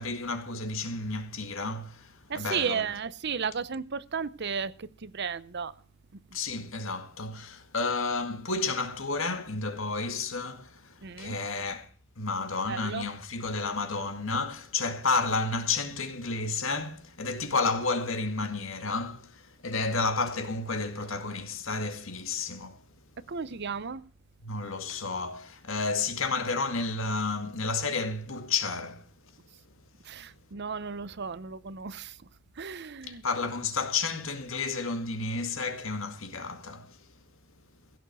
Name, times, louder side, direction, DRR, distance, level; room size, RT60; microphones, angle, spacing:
voice 1, 0.0-2.9 6.3-11.9 12.2-22.8 24.4-29.0 33.0-37.1, left 3 dB, 65° left, 2.0 m, -31 dB
voice 2, 2.3-5.7 11.0-11.4 12.7-13.1 23.3-24.0 30.0-32.2 32.6-33.2, right 6 dB, 50° right, 0.7 m, -34 dB
16.0 x 7.2 x 7.8 m
head